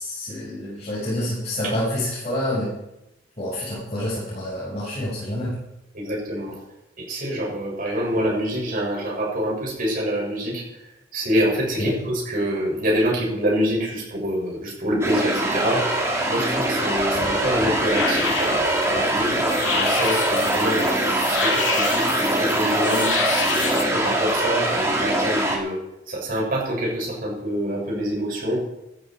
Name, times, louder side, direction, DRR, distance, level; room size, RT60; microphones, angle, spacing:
voice 1, 0.0-2.7 3.4-5.5 11.8-11.9, left 1 dB, 35° left, -9 dB, 6.0 m, -27 dB
voice 2, 5.9-6.6 7.0-15.9 16.3-19.3 19.7-23.1 23.5-25.8 26.1-28.6, equal, 45° right, -3 dB, 6.7 m, -26 dB
sound 1, 15.0-25.6, right 1 dB, 15° right, 2.4 m, -23 dB
sound 2, 17.0-23.8, left 5 dB, 75° left, 2.5 m, -29 dB
15.5 x 13.0 x 4.7 m, 0.91 s
head